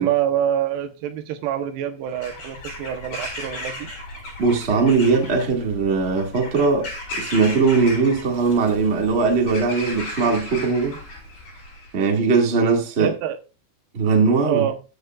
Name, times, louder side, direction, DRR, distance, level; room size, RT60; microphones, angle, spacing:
voice 1, 0.0-3.9 13.0-13.4 14.4-14.8, right 11 dB, 90° right, 3.1 m, -25 dB
Bird vocalization bird call bird song / Crow, 2.1-12.0, left 1 dB, 45° left, 5.6 m, -36 dB
voice 2, 4.4-11.0 11.9-13.1 13.9-14.6, right 4 dB, 35° right, 0.9 m, -20 dB
13.0 x 8.0 x 2.4 m
omnidirectional pair, 4.6 m